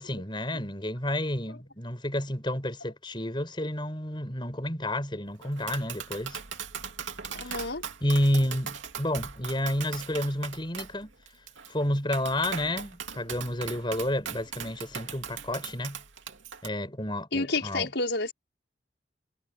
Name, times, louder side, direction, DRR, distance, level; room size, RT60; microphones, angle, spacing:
voice 1, 0.0-6.4 7.4-7.7 8.0-11.1 11.7-16.0 16.6-17.9, left 1 dB, 25° left, 5.3 m, -30 dB
Tap, 5.4-16.7, right 7 dB, 90° right, 2.7 m, -39 dB
voice 2, 7.3-7.9 17.3-18.3, left 3 dB, 70° left, 5.8 m, -30 dB
head